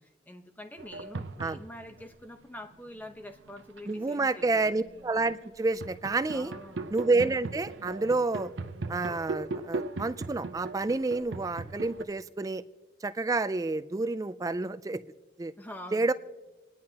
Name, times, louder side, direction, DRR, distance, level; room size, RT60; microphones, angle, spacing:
voice 1, 0.0-4.7 6.3-7.0 15.6-16.1, left 1 dB, 10° left, 6 dB, 0.9 m, -46 dB
sound 1, 0.8-2.0 2.9-4.1 4.6-12.0, right 3 dB, 80° right, 0.7 m, -39 dB
voice 2, 3.9-6.5 6.9-8.5 8.9-12.6 13.0-15.0 15.4-15.5 15.9-16.1, right 3 dB, 20° right, 12 dB, 0.3 m, -29 dB
28.0 x 10.5 x 2.9 m, 1.2 s
head